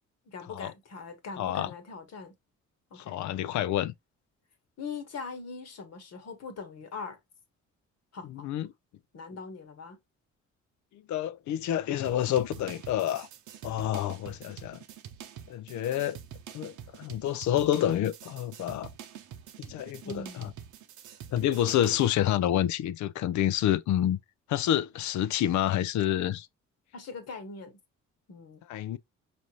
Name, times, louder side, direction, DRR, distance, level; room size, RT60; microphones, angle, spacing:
voice 1, 0.3-2.3 2.9-3.2 4.8-7.2 8.1-8.5 9.1-10.0 20.0-20.5 26.9-27.8 28.3-28.6, left 4 dB, 55° left, 1.2 m, -41 dB
voice 2, 1.4-1.7 3.0-3.9 8.3-8.7 11.1-13.3 13.6-14.8 15.5-16.2 16.5-18.9 19.6-20.5 21.3-24.2 24.5-26.5 28.7-29.0, left 11 dB, 70° left, 0.5 m, -28 dB
sound 1, 12.0-22.1, right 9 dB, 80° right, 0.7 m, -46 dB
5.2 x 2.6 x 2.9 m
cardioid pair, 90°, 30 cm